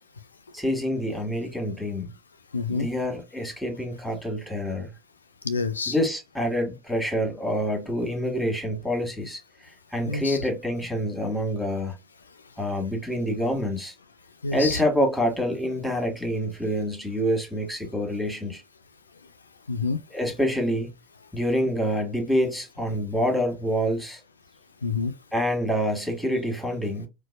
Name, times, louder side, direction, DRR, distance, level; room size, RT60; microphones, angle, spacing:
voice 1, 0.5-2.1 2.7-4.9 5.9-12.0 12.6-13.9 14.5-18.6 20.1-20.9 21.3-24.2 25.3-27.1, equal, ahead, 1.4 m, -27 dB
voice 2, 2.5-2.9 5.4-6.0 10.1-10.4 14.4-14.8 19.7-20.0 24.8-25.1, left 4 dB, 85° left, 0.3 m, -27 dB
4.5 x 2.1 x 2.3 m
figure-of-eight pair, 80°, 0 cm